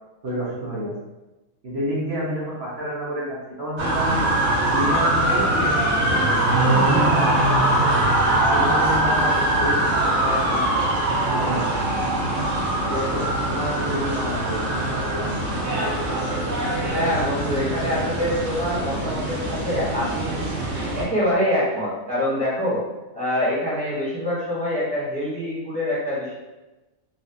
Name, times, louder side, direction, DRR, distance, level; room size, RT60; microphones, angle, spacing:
voice 1, 0.2-0.9 1.6-4.3 4.6-6.2 6.5-7.8 8.5-10.7 11.2-12.0 12.9-15.3, equal, 55° right, -8 dB, 1.0 m, -29 dB
sound 1, 3.8-21.0, right 1 dB, 85° right, 1.2 m, -22 dB
voice 2, 16.6-20.5 20.9-22.8 23.1-26.3, left 1 dB, 5° left, -9 dB, 1.0 m, -25 dB
3.9 x 2.4 x 2.7 m, 1.1 s
omnidirectional pair, 1.4 m